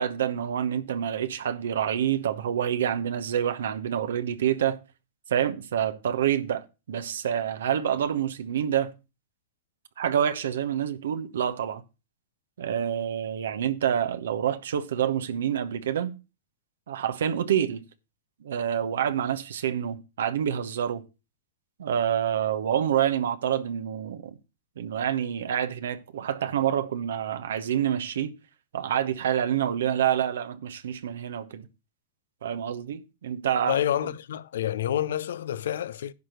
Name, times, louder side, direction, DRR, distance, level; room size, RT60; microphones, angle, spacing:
voice 1, 0.0-4.8 5.3-8.9 10.0-11.8 12.6-16.1 16.9-17.8 18.4-21.0 21.8-24.3 24.8-28.3 28.7-31.7 32.4-33.8, right 9 dB, 80° right, 1.0 m, -27 dB
voice 2, 33.7-36.1, left 11 dB, 75° left, 0.6 m, -28 dB
10.5 x 4.5 x 6.6 m
hypercardioid pair, 105°, 0 cm